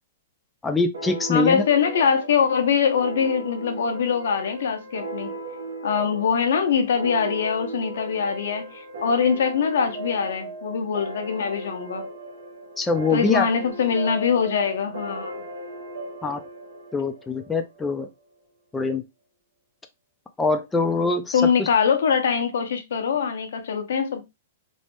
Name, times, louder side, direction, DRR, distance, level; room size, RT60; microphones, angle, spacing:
voice 1, 0.6-1.6 12.8-13.5 16.2-16.4 16.9-18.1 18.7-19.0 20.4-21.7, left 3 dB, 10° left, 0.4 m, -24 dB
sound 1, 0.9-18.0, right 2 dB, 80° right, 1.2 m, -37 dB
voice 2, 1.3-5.3 5.8-12.0 13.1-15.4 21.3-24.2, left 6 dB, 75° left, 0.8 m, -23 dB
3.2 x 2.0 x 3.0 m
hypercardioid pair, 125°, 0 cm